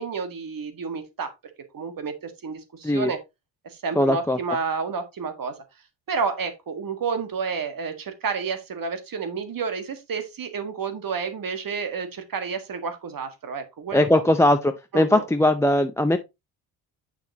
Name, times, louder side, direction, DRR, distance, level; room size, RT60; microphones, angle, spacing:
voice 1, 0.0-1.3 1.7-3.2 3.6-5.5 6.1-14.2 14.9-15.3, right 5 dB, 50° right, 1.7 m, -30 dB
voice 2, 4.0-4.4 13.9-16.2, left 1 dB, 5° left, 0.6 m, -20 dB
7.2 x 5.8 x 2.8 m
supercardioid pair, 60°, 44 cm